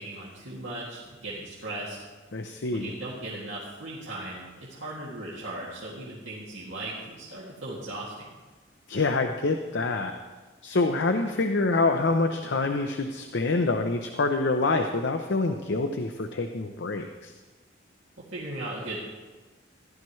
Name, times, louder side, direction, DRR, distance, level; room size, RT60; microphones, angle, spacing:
voice 1, 0.0-2.0 2.7-8.3 18.3-19.0, right 2 dB, 85° right, -7 dB, 2.3 m, -37 dB
voice 2, 2.3-2.9 8.9-10.1 10.6-17.3, left 3 dB, 65° left, 6 dB, 0.7 m, -26 dB
15.5 x 12.0 x 3.2 m, 1.3 s
head